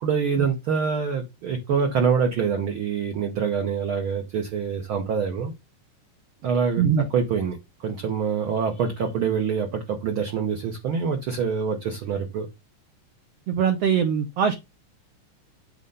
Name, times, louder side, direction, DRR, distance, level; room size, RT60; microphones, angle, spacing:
voice 1, 0.0-5.5 6.4-12.5, right 6 dB, 70° right, 1.2 m, -25 dB
voice 2, 13.5-14.6, right 7 dB, 85° right, 1.4 m, -22 dB
8.3 x 3.2 x 5.4 m
omnidirectional pair, 4.0 m